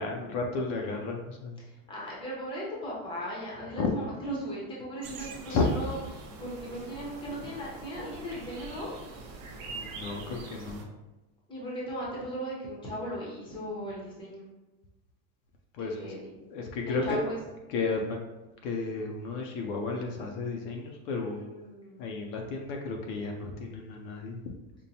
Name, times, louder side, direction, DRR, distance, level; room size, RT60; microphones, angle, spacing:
voice 1, 0.0-1.6 3.7-3.9 5.5-5.7 9.7-10.8 15.7-16.0 16.4-17.2 17.7-18.2 18.6-21.4 22.0-24.5, left 4 dB, 60° left, 1 dB, 0.5 m, -33 dB
voice 2, 1.7-6.0 6.4-8.9 11.5-14.5 16.0-16.3 16.9-17.4 21.2-22.0, equal, 10° left, -5 dB, 0.7 m, -37 dB
sound 1, 5.0-10.8, right 4 dB, 60° right, 0.7 m, -44 dB
5.2 x 2.1 x 2.7 m, 1.1 s
cardioid pair, 160°, 47 cm